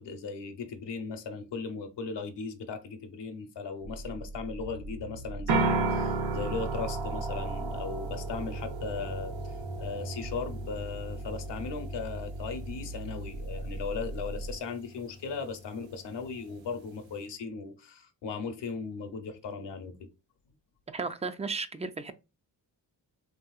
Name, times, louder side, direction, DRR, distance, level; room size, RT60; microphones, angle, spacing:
voice 1, 0.0-20.1, left 5 dB, 70° left, 0.8 m, -37 dB
sound 1, 3.8-14.6, right 1 dB, 65° right, 1.2 m, -39 dB
sound 2, 5.5-17.2, right 3 dB, 90° right, 0.7 m, -36 dB
voice 2, 20.9-22.1, right 4 dB, 15° right, 0.3 m, -34 dB
3.3 x 2.7 x 2.3 m
cardioid pair, 55°, 44 cm